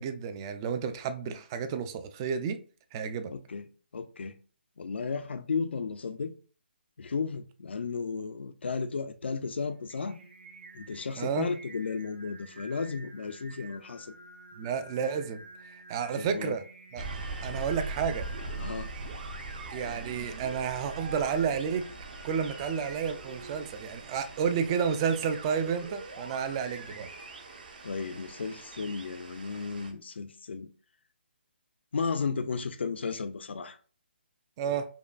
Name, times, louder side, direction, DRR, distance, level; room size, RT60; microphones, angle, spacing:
voice 1, 0.0-2.6 2.9-3.3 11.2-11.5 14.6-15.4 15.7-16.6 16.9-17.0 17.4-18.3 19.7-21.9 22.2-27.1 34.6-34.9, right 7 dB, 20° right, 0.3 m, -31 dB
voice 2, 3.3-3.6 3.9-4.4 4.8-6.3 7.0-10.2 10.7-14.1 16.2-16.6 18.6-18.9 27.8-30.7 31.9-33.8, left 5 dB, 80° left, 0.4 m, -34 dB
Singing, 9.4-25.6, right 3 dB, 65° right, 1.2 m, -51 dB
sound 1, 17.0-29.9, right 3 dB, 50° right, 0.8 m, -41 dB
5.2 x 2.2 x 2.4 m
hypercardioid pair, 155°, 6 cm